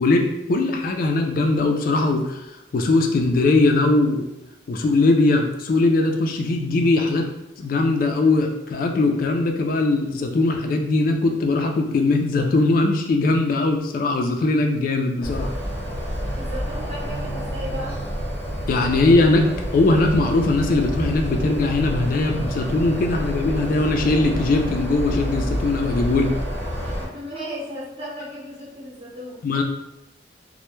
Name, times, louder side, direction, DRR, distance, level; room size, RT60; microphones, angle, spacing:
voice 1, 0.0-2.4 2.7-4.2 4.7-7.3 7.6-15.5 18.7-19.5 19.7-26.3 29.4-29.6, left 2 dB, 50° left, 3 dB, 0.3 m, -20 dB
sound 1, 15.2-27.1, equal, 10° left, 0.7 m, -28 dB
voice 2, 16.3-18.0 26.8-29.6, equal, 30° right, -10 dB, 0.7 m, -35 dB
2.1 x 2.0 x 3.0 m, 0.91 s
head